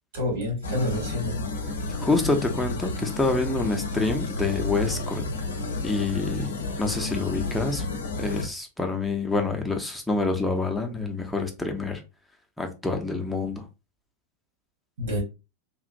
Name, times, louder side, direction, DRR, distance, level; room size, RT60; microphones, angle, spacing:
voice 1, 0.1-1.4 15.0-15.2, left 1 dB, 60° right, 1.5 m, -28 dB
sound 1, 0.6-8.5, left 2 dB, 70° left, 0.5 m, -31 dB
voice 2, 1.9-5.2 5.8-7.8 8.2-12.0 12.6-13.7, left 3 dB, 5° left, 0.6 m, -27 dB
3.0 x 2.5 x 2.5 m
figure-of-eight pair, 90°, 0 cm